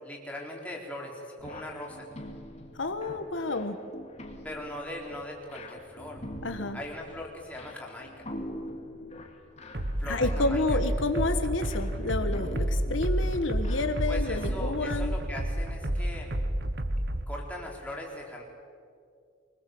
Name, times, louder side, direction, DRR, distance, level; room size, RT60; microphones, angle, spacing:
voice 1, 0.0-2.1 4.4-6.2 6.7-8.3 10.0-10.8 14.1-16.3 17.3-18.4, left 1 dB, 5° left, -2 dB, 4.1 m, -40 dB
sound 1, 1.4-15.2, left 1 dB, 35° left, 2.4 m, -44 dB
voice 2, 2.7-3.8 6.4-6.8 10.1-15.2, left 2 dB, 80° left, 8 dB, 1.4 m, -30 dB
sound 2, 9.7-17.2, right 1 dB, 55° right, 1.3 m, -30 dB
25.0 x 20.0 x 7.8 m, 2.3 s
head